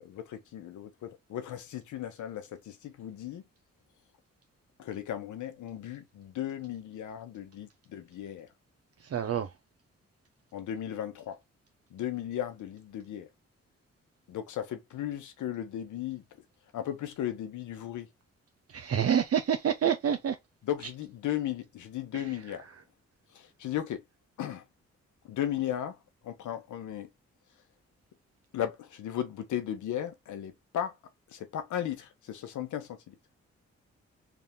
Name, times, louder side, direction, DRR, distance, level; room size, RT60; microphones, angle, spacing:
voice 1, 0.0-3.4 4.8-8.5 10.5-11.4 11.9-13.3 14.3-16.2 16.7-18.1 20.6-22.7 23.3-24.0 24.4-24.6 25.2-26.0 26.2-27.1 28.5-31.0 31.3-33.1, left 11 dB, 85° left, 1.0 m, -36 dB
voice 2, 9.1-9.5 18.7-20.3, right 8 dB, 55° right, 0.7 m, -27 dB
3.5 x 2.5 x 3.5 m
supercardioid pair, 55°, 29 cm